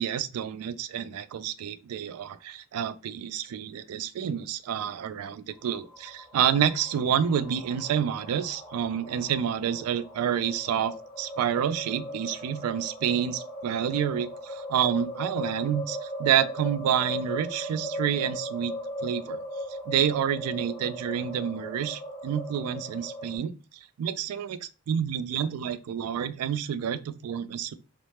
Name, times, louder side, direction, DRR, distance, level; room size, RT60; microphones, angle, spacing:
voice 1, 0.0-18.7 19.0-19.4 19.9-23.5 24.0-27.7, right 9 dB, 85° right, 0.3 m, -28 dB
sound 1, 5.5-23.4, equal, 15° left, 1.1 m, -38 dB
2.8 x 2.1 x 3.1 m
head